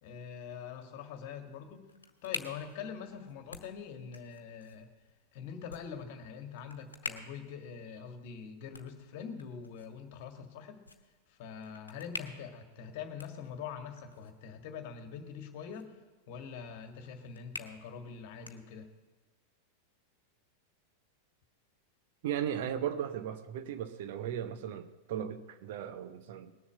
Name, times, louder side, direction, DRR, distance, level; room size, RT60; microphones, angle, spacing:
voice 1, 0.0-1.9 2.2-4.9 5.3-10.9 11.3-15.9 16.3-18.9, left 7 dB, 50° left, 6 dB, 1.7 m, -44 dB
sound 1, 1.4-19.1, left 3 dB, 75° left, 1.1 m, -49 dB
voice 2, 22.2-26.5, right 9 dB, 50° right, 10 dB, 0.9 m, -36 dB
19.0 x 7.2 x 7.5 m, 1.2 s
figure-of-eight pair, 90°, 0 cm